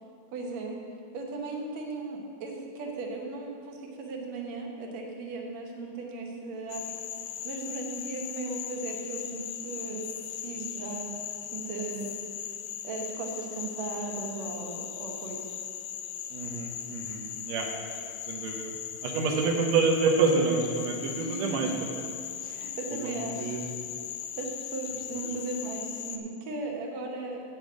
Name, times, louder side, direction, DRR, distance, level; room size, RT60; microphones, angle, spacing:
voice 1, 0.3-0.8 1.1-11.1 11.4-12.1 12.8-15.5 21.2-21.5 22.4-23.7 24.4-27.4, right 3 dB, 65° right, 1 dB, 1.9 m, -37 dB
Frog, 6.7-26.2, left 10 dB, 80° left, 1.9 m, -38 dB
voice 2, 16.3-17.7 18.3-18.7 19.0-22.0 22.9-23.7, right 4 dB, 85° right, 0 dB, 1.5 m, -28 dB
9.1 x 5.2 x 7.6 m, 2.3 s
omnidirectional pair, 4.1 m